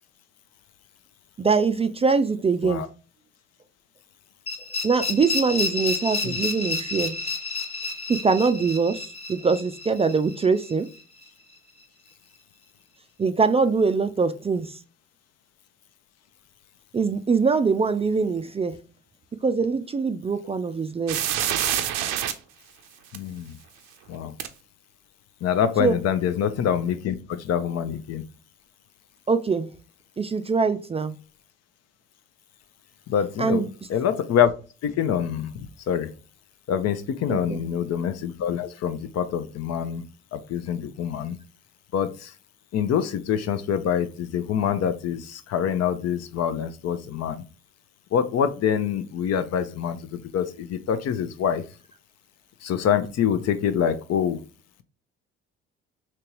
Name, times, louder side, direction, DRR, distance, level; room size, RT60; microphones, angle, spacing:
voice 1, 1.4-2.8 4.8-7.1 8.1-10.9 13.2-14.8 16.9-18.8 19.4-21.2 25.8-26.0 29.3-29.7 30.2-31.1 33.4-33.7 37.3-37.6, right 4 dB, 20° right, 10 dB, 0.3 m, -23 dB
sound 1, 4.5-11.3, left 3 dB, 20° left, 1.1 m, -31 dB
sound 2, 21.1-22.3 23.1-23.2 24.4-24.5, right 10 dB, 80° right, 0.6 m, -25 dB
voice 2, 23.1-23.6 24.1-24.3 25.4-28.2 33.1-33.6 33.9-34.5 34.8-36.1 36.7-40.0 40.3-41.4 41.9-42.3 42.7-47.4 48.1-51.6 52.6-54.4, left 8 dB, 55° left, 11 dB, 0.6 m, -25 dB
3.4 x 2.9 x 2.9 m, 0.35 s
supercardioid pair, 65°, 30 cm